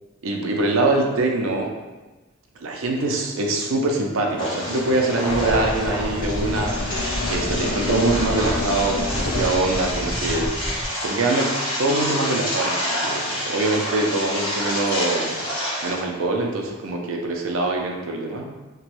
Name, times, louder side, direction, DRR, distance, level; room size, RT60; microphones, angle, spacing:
voice 1, 0.2-1.7 2.6-10.7 11.0-11.5 11.8-15.5 15.8-18.5, right 2 dB, 85° right, 1 dB, 0.5 m, -24 dB
sound 1, 4.3-9.4, left 3 dB, 65° left, 0.3 m, -31 dB
sound 2, 4.4-16.0, equal, 25° left, 0.9 m, -28 dB
sound 3, 5.3-10.9, equal, 10° right, 0.9 m, -30 dB
3.0 x 2.2 x 3.0 m, 1.2 s
head